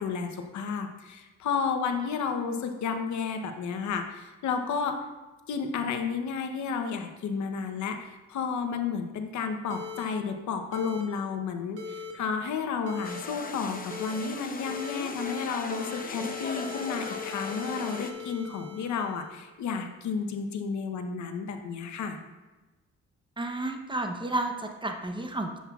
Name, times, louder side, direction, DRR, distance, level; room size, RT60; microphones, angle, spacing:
voice 1, 0.0-5.0 5.5-22.2, left 5 dB, 70° left, 6 dB, 0.9 m, -32 dB
sound 1, 9.7-10.1 10.7-11.0 11.8-12.1 12.9-13.2 13.9-14.3 14.7-15.5 15.7-19.4, left 4 dB, 50° right, 1.1 m, -40 dB
sound 2, 13.0-18.1, left 4 dB, 30° left, 0.7 m, -38 dB
voice 2, 23.4-25.6, right 2 dB, 15° right, 4 dB, 0.8 m, -31 dB
9.8 x 7.3 x 2.4 m, 1.1 s
cardioid pair, 90°, 30 cm